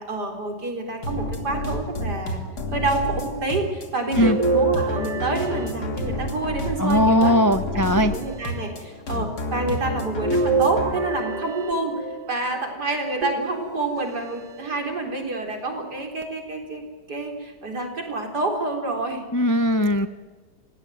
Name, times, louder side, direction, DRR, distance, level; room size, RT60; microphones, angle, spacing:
voice 1, 0.0-2.4 2.7-16.8 17.1-19.2, right 2 dB, 70° right, 3 dB, 4.7 m, -28 dB
sound 1, 1.0-10.9, left 1 dB, 65° left, 3.2 m, -30 dB
sound 2, 4.2-6.5 7.2-8.2 10.2-12.3 13.2-14.1 14.7-14.8 16.2-16.3, right 3 dB, 85° right, 2.2 m, -27 dB
voice 2, 6.8-8.1 19.3-20.1, equal, 20° left, 10 dB, 0.5 m, -19 dB
27.5 x 16.5 x 9.4 m, 1.4 s
omnidirectional pair, 1.8 m